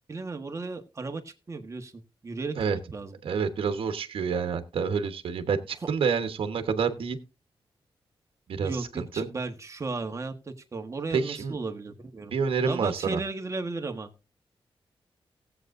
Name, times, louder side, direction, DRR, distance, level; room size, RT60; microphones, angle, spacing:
voice 1, 0.1-2.6 2.9-3.2 8.6-12.3 12.7-14.3, right 3 dB, 30° right, 5 dB, 1.4 m, -35 dB
voice 2, 3.2-7.2 8.5-9.3 11.1-11.6 12.3-13.2, right 6 dB, 75° right, 8 dB, 1.2 m, -28 dB
17.5 x 8.0 x 2.6 m, 0.31 s
wide cardioid pair, 120°, 9 cm